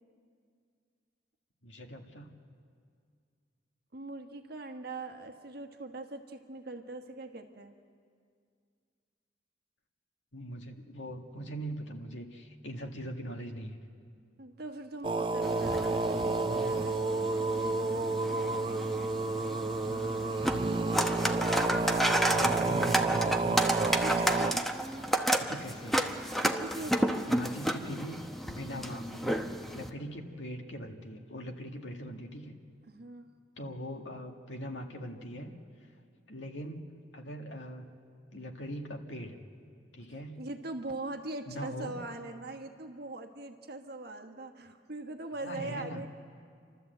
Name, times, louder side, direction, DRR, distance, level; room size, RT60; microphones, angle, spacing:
voice 1, 1.6-2.3 10.3-13.8 19.8-20.3 22.1-23.8 24.1-24.6 25.4-26.0 27.3-28.2 28.5-29.4 29.7-32.5 33.6-35.5 36.3-36.8 37.1-38.0 38.3-39.4 39.9-40.4 41.5-41.9 45.4-46.0, equal, 80° left, 3 dB, 1.8 m, -41 dB
voice 2, 3.9-7.8 14.4-17.9 24.0-24.6 26.3-27.3 32.9-33.3 40.3-46.1, right 2 dB, 60° right, 5 dB, 1.3 m, -41 dB
sound 1, 15.0-24.5, right 3 dB, 25° right, 0.5 m, -30 dB
sound 2, 15.4-29.9, right 1 dB, ahead, 0.9 m, -32 dB
30.0 x 12.5 x 7.9 m, 2.2 s
head